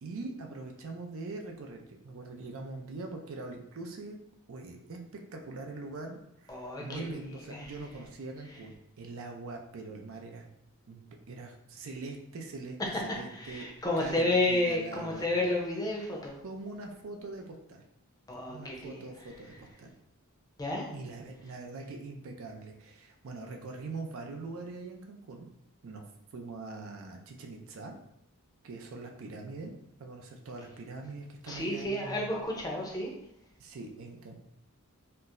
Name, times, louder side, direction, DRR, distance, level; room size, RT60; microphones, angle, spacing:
voice 1, 0.0-4.2 4.5-10.5 10.9-13.7 14.0-15.3 16.4-17.8 18.5-19.9 20.9-25.5 25.8-26.0 26.3-27.9 28.6-29.7 30.0-32.4 33.6-34.3, right 3 dB, 65° right, 2 dB, 0.5 m, -43 dB
voice 2, 6.5-7.0 7.5-7.6 13.3-16.4 18.3-19.0 20.6-20.9 31.5-33.1, left 2 dB, 15° left, -1 dB, 0.6 m, -31 dB
4.3 x 2.0 x 2.5 m, 0.77 s
head